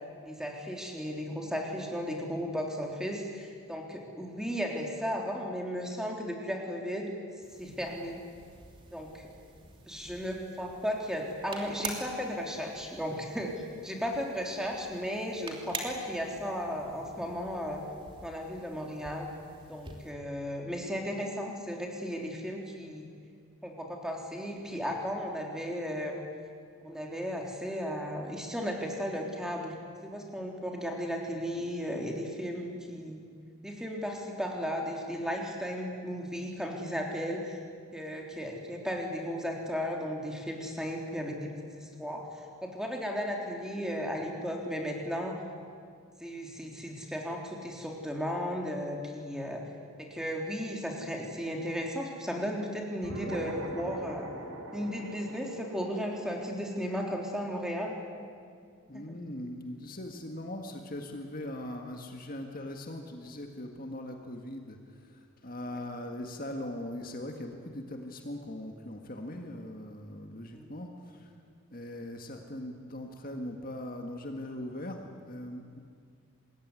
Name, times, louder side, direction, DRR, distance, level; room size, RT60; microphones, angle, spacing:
voice 1, 0.2-7.1 7.6-8.2 8.9-9.3 9.9-17.8 18.2-19.3 19.7-23.1 23.6-26.2 26.8-29.7 30.0-33.2 33.6-37.6 37.9-41.5 41.8-45.4 46.2-49.6 50.0-54.3 54.7-58.0 59.1-59.2 70.5-70.7 71.3-71.4, equal, 5° right, 0 dB, 3.5 m, -35 dB
sound 1, 7.4-20.1, right 3 dB, 25° right, 3.1 m, -46 dB
sound 2, 53.0-57.8, equal, 75° right, 5.3 m, -42 dB
voice 2, 58.9-71.3 71.7-75.8, left 1 dB, 40° left, 3 dB, 1.9 m, -40 dB
26.5 x 21.0 x 9.8 m, 2.1 s
head